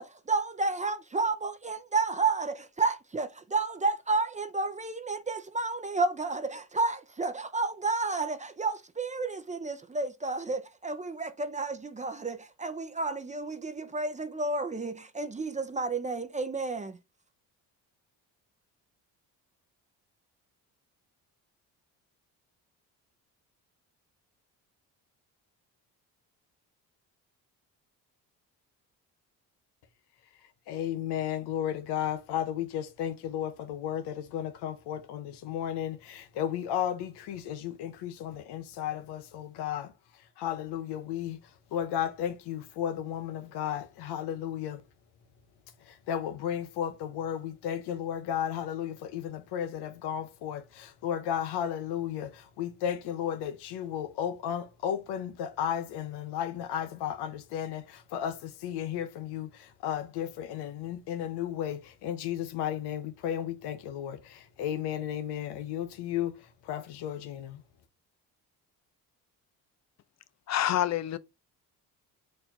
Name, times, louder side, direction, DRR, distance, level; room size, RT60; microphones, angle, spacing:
voice 1, 0.0-17.0, right 3 dB, 20° right, 0.5 m, -31 dB
voice 2, 30.7-39.9 40.4-41.4 41.7-44.8 46.1-66.3 66.7-67.6, left 10 dB, 90° left, 0.9 m, -34 dB
voice 3, 70.5-71.2, left 12 dB, 45° left, 0.5 m, -27 dB
4.4 x 2.6 x 4.3 m
cardioid pair, 85°, 39 cm